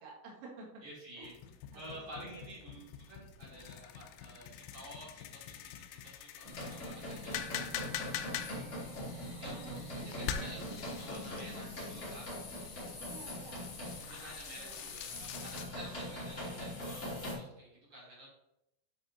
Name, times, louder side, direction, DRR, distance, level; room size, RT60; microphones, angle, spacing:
voice 1, 0.0-0.8 1.2-1.3 1.7-2.9 8.9-11.2 13.0-13.7 14.5-15.0, right 3 dB, 60° right, -3 dB, 3.7 m, -53 dB
voice 2, 0.8-1.3 1.7-8.1 9.4-12.3 14.1-17.1 17.3-18.3, right 1 dB, 30° right, -6 dB, 3.3 m, -51 dB
sound 1, 1.2-15.7, left 9 dB, 90° left, 3.4 m, -45 dB
sound 2, 6.4-17.3, left 1 dB, 30° left, 1.5 m, -42 dB
10.5 x 7.8 x 2.8 m, 0.86 s
omnidirectional pair, 5.8 m